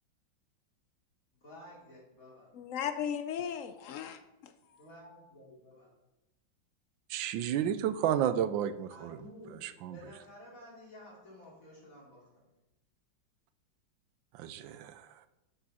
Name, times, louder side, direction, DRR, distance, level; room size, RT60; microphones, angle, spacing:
voice 1, 1.3-2.5 4.7-5.9 8.9-12.3, left 1 dB, 45° left, -4 dB, 3.4 m, -52 dB
voice 2, 2.5-4.8, left 8 dB, 90° left, 9 dB, 0.7 m, -37 dB
voice 3, 7.1-9.2 9.6-10.0 14.3-15.1, right 10 dB, 85° right, 12 dB, 1.4 m, -32 dB
11.0 x 6.7 x 4.2 m, 0.94 s
omnidirectional pair, 2.0 m